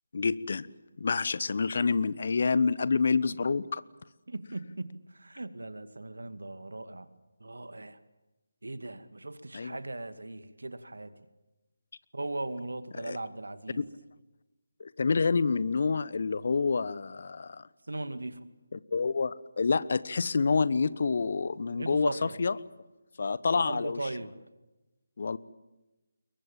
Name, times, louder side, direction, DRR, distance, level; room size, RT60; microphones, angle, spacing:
voice 1, 0.1-0.7 1.0-3.8 9.5-9.8 12.9-13.2 13.8-13.9 14.8-17.7 18.7-22.6 23.2-24.0 25.2-25.4, left 4 dB, 45° left, 18 dB, 1.1 m, -28 dB
voice 2, 4.3-7.1 7.4-8.0 8.6-11.1 12.1-13.8 17.9-18.4 21.7-22.4 23.5-24.3, right 2 dB, 70° right, 11 dB, 2.3 m, -38 dB
28.5 x 22.5 x 7.5 m, 1.1 s
figure-of-eight pair, 155°, 0 cm